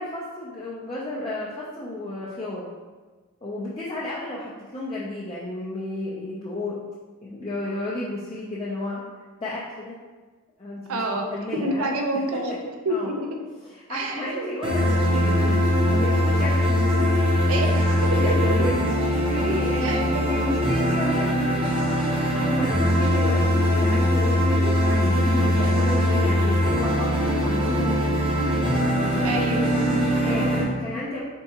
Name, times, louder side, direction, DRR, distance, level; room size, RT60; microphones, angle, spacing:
voice 1, 0.0-2.7 3.4-6.8 7.2-9.0 9.4-10.0 10.6-11.9 12.9-13.1 13.6-15.5 15.9-16.8 17.6-17.9 18.1-21.6 22.3-28.3 29.0-29.2 30.2-31.2, left 1 dB, 25° left, -7 dB, 0.4 m, -32 dB
voice 2, 10.9-12.6 12.8-13.4 13.9-14.5 16.6-16.9 17.5-18.5 19.8-20.2 29.2-30.7, right 1 dB, 75° right, 3 dB, 0.5 m, -28 dB
sound 1, 14.6-30.6, equal, 25° right, 0.6 m, -21 dB
4.5 x 3.6 x 2.8 m, 1.3 s
head